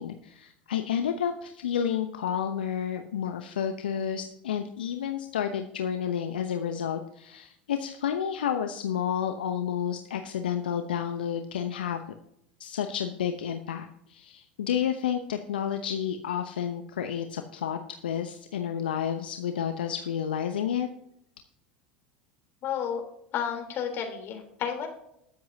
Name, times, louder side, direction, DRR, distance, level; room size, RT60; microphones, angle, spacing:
voice 1, 0.0-12.0 12.6-17.8 18.0-20.9, left 8 dB, 75° left, 6 dB, 0.8 m, -30 dB
voice 2, 22.6-23.0 23.3-24.9, left 8 dB, 45° left, 3 dB, 3.6 m, -31 dB
21.0 x 7.8 x 2.8 m, 0.76 s
hypercardioid pair, 80°, 5 cm